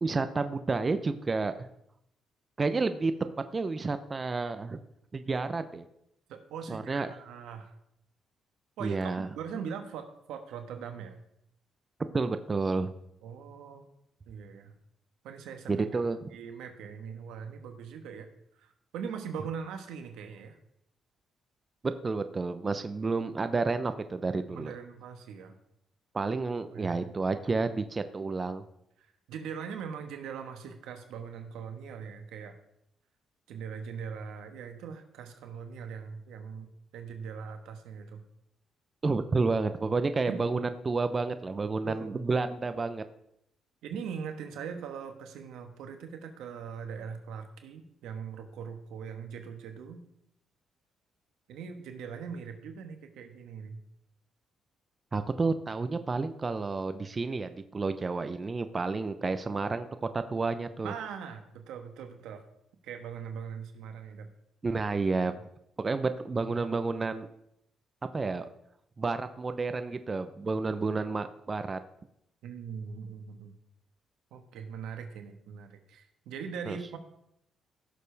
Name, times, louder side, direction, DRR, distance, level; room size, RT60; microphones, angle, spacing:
voice 1, 0.0-1.7 2.6-3.1 3.5-4.8 5.1-5.8 6.7-7.1 8.8-9.3 12.1-12.9 15.7-16.2 21.8-24.8 26.1-28.6 39.0-43.0 55.1-59.9 60.1-60.9 64.6-65.3 65.8-67.3 68.1-68.4 69.0-71.8 76.7-76.8, right 3 dB, 30° right, 10 dB, 0.7 m, -30 dB
voice 2, 6.3-7.7 8.8-11.2 13.2-13.9 14.3-14.7 15.2-15.9 16.3-18.3 18.5-20.6 24.5-25.6 26.7-27.1 29.0-32.6 33.5-38.2 40.3-40.4 41.8-42.2 43.8-50.0 51.5-53.8 60.8-62.4 62.8-64.3 72.4-73.5 74.3-77.0, right 6 dB, 85° right, 6 dB, 1.3 m, -41 dB
16.0 x 6.7 x 3.4 m, 0.76 s
cardioid pair, 90°, 0 cm